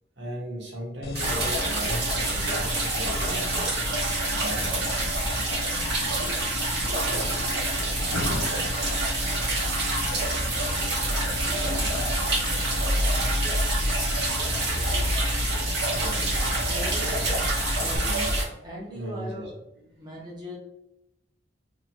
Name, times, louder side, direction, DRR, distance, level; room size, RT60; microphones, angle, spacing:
voice 1, 0.2-3.8 4.3-4.9 6.2-6.3 6.9-7.4 11.4-11.8 14.7-15.0 15.9-16.4 18.0-19.5 20.1-20.4, equal, 90° right, -3 dB, 1.0 m, -37 dB
sound 1, 1.0-18.0, left 2 dB, 60° left, 0.4 m, -36 dB
sound 2, 1.1-18.4, right 1 dB, 70° right, 1.2 m, -26 dB
voice 2, 16.5-17.3 17.8-18.0 18.6-19.5 20.0-20.6, equal, 25° right, -5 dB, 0.8 m, -38 dB
2.8 x 2.3 x 2.7 m, 0.87 s
head